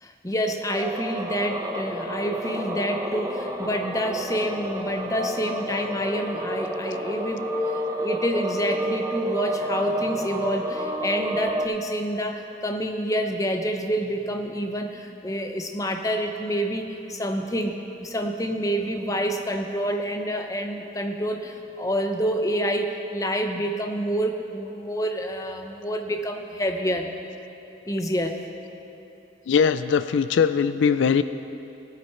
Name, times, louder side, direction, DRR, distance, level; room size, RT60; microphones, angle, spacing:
voice 1, 0.0-27.1 27.9-28.4, equal, 20° left, 4 dB, 0.8 m, -28 dB
sound 1, 0.7-11.7, equal, 15° right, 0.7 m, -30 dB
voice 2, 29.5-31.2, left 6 dB, 90° left, 13 dB, 0.4 m, -20 dB
18.0 x 9.1 x 4.4 m, 2.8 s
head